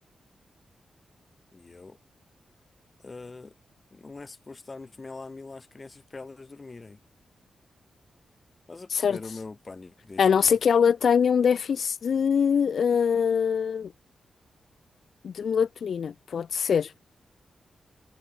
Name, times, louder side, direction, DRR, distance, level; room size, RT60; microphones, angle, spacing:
voice 1, 1.5-2.0 3.0-3.5 3.9-7.0 8.7-10.6, left 3 dB, 25° left, 5.7 m, -43 dB
voice 2, 10.2-13.9 15.2-16.9, left 7 dB, 65° left, 4.6 m, -23 dB
wide cardioid pair, 130°, 0 cm